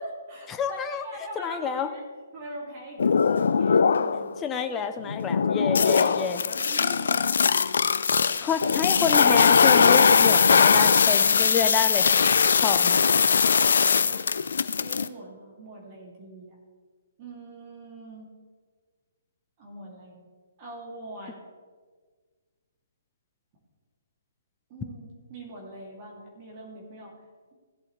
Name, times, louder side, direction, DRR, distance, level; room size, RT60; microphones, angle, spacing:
voice 1, 0.0-2.0 2.3-4.3 5.5-7.1 13.6-14.3 14.8-16.6 17.2-18.3 19.6-20.2 20.6-21.4 24.7-27.2, right 1 dB, 35° right, -2 dB, 2.7 m, -42 dB
voice 2, 0.5-1.0 1.4-1.9 4.4-6.4 8.4-12.3 12.6-13.0, left 6 dB, 15° left, 7 dB, 0.6 m, -28 dB
sound 1, 3.0-4.3 4.7-15.1, left 6 dB, 65° left, 0.4 m, -21 dB
16.5 x 8.1 x 3.3 m, 1.5 s
figure-of-eight pair, 135°, 0 cm